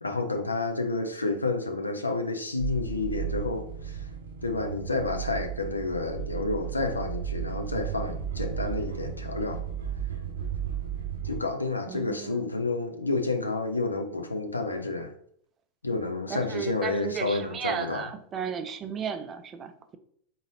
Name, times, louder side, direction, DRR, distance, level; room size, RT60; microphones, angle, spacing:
voice 1, 0.0-4.1 4.4-9.6 11.2-15.1 15.8-18.0, left 3 dB, 80° left, 6 dB, 0.4 m, -30 dB
sound 1, 2.6-11.4, right 9 dB, 70° right, 0.7 m, -34 dB
voice 2, 11.9-12.5 16.3-20.0, right 7 dB, 25° right, 9 dB, 0.4 m, -35 dB
4.0 x 3.8 x 2.6 m, 0.63 s
figure-of-eight pair, 90°, 0 cm